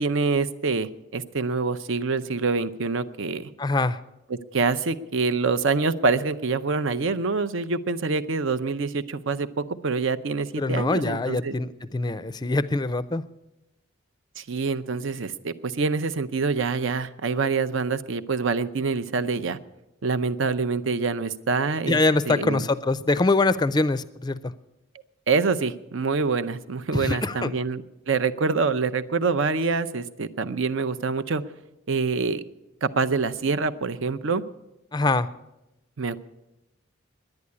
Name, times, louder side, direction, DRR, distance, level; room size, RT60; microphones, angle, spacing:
voice 1, 0.0-3.5 4.3-11.6 14.4-19.6 20.0-22.0 22.3-22.6 25.3-31.4 31.9-32.4 32.8-34.4 36.0-36.2, right 4 dB, 70° right, 12 dB, 0.6 m, -26 dB
voice 2, 3.6-4.0 10.6-13.2 21.9-24.5 26.9-27.5 34.9-35.3, left 2 dB, 20° left, 16 dB, 0.4 m, -24 dB
10.5 x 9.8 x 9.6 m, 0.95 s
head